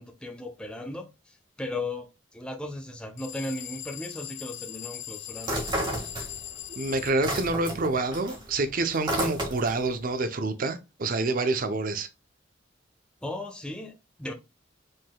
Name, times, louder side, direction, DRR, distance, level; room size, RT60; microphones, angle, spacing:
voice 1, 0.0-5.7 13.2-14.3, left 2 dB, 5° left, 0.6 m, -37 dB
sound 1, 3.2-7.2, left 12 dB, 70° left, 0.6 m, -40 dB
sound 2, 5.4-6.6 6.9-9.9, right 1 dB, 25° right, 1.7 m, -31 dB
voice 2, 6.7-12.1, right 3 dB, 45° right, 0.6 m, -27 dB
5.2 x 3.7 x 2.2 m
head